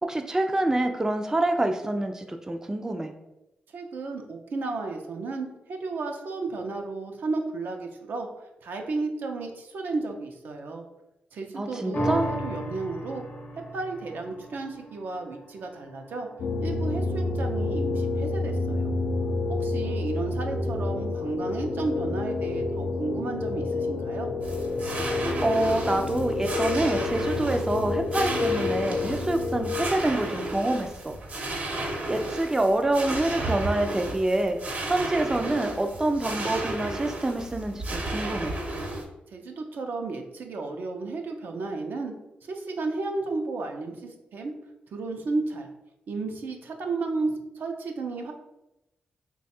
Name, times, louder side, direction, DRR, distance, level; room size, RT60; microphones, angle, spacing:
voice 1, 0.0-3.1 11.6-12.3 25.4-31.1 32.1-38.5, right 1 dB, 15° right, 5 dB, 0.3 m, -26 dB
voice 2, 3.7-8.3 8.6-10.8 11.3-13.2 13.7-16.3 16.6-18.9 19.5-24.3 39.3-42.1 42.5-44.5 44.9-45.7 46.1-48.3, right 3 dB, 75° right, 3 dB, 0.5 m, -33 dB
sound 1, 11.9-18.6 19.1-19.2, right 1 dB, 35° left, 0.6 m, -37 dB
sound 2, 16.4-29.9, left 3 dB, 85° left, 0.4 m, -29 dB
sound 3, 24.4-39.0, right 1 dB, 50° right, 0.8 m, -33 dB
3.1 x 2.3 x 4.2 m, 0.91 s
cardioid pair, 70°, 3 cm